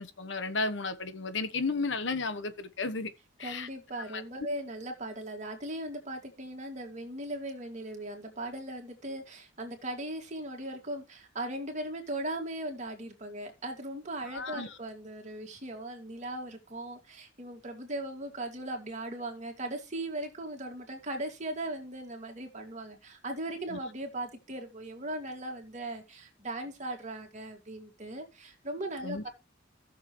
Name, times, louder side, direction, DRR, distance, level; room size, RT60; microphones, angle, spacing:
voice 1, 0.0-3.1 3.4-3.7 4.1-4.2 14.3-14.7 23.7-23.8 29.0-29.2, left 3 dB, 65° left, 1.1 m, -33 dB
voice 2, 3.4-29.3, right 1 dB, 35° right, 2.3 m, -38 dB
15.5 x 6.6 x 3.2 m
head